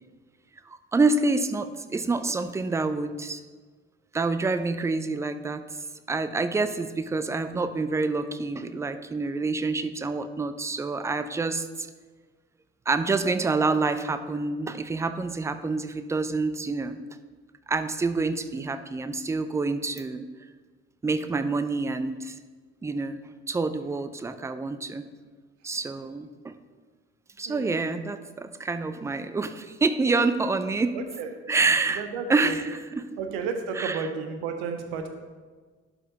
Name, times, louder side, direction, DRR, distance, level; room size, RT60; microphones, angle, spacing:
voice 1, 0.9-3.4 4.1-5.6 6.1-11.9 12.9-17.0 17.7-20.3 21.0-22.4 22.8-23.2 23.5-25.0 25.6-26.5 27.4-31.0 31.5-32.6 32.9-33.1 33.8-34.0, right 3 dB, 10° right, 11 dB, 0.4 m, -27 dB
voice 2, 27.4-27.9 30.9-31.3 31.9-32.5 33.2-35.1, right 5 dB, 65° right, 6 dB, 0.9 m, -32 dB
11.5 x 5.5 x 2.8 m, 1.4 s
figure-of-eight pair, 50°, 35 cm